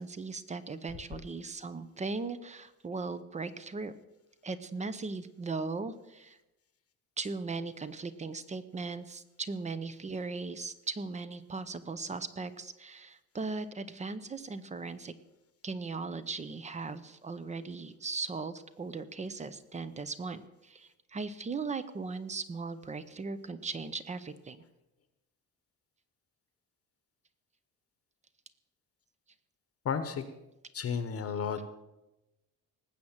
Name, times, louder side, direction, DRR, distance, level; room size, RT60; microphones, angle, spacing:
voice 1, 0.0-3.9 4.4-6.4 7.2-15.1 15.6-24.6, right 4 dB, 20° right, 14 dB, 0.6 m, -38 dB
voice 2, 29.8-30.2 30.7-31.6, left 6 dB, 40° left, 10 dB, 1.0 m, -32 dB
19.0 x 7.8 x 7.3 m, 0.97 s
cardioid pair, 170°, 36 cm